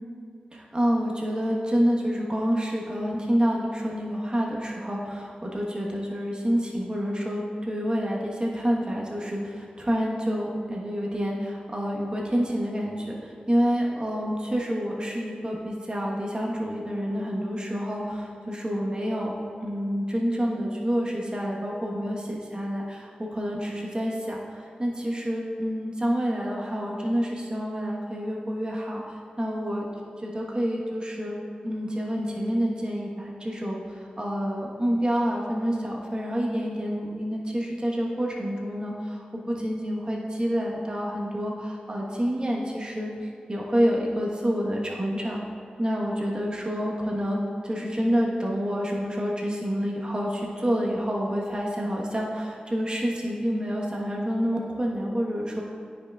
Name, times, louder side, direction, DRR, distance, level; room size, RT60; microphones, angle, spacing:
voice 1, 0.5-19.3 19.6-29.8 30.2-31.4 31.6-45.4 45.8-55.6, equal, 30° right, -2 dB, 1.2 m, -28 dB
9.7 x 5.7 x 2.4 m, 2.5 s
cardioid pair, 45°, 3 cm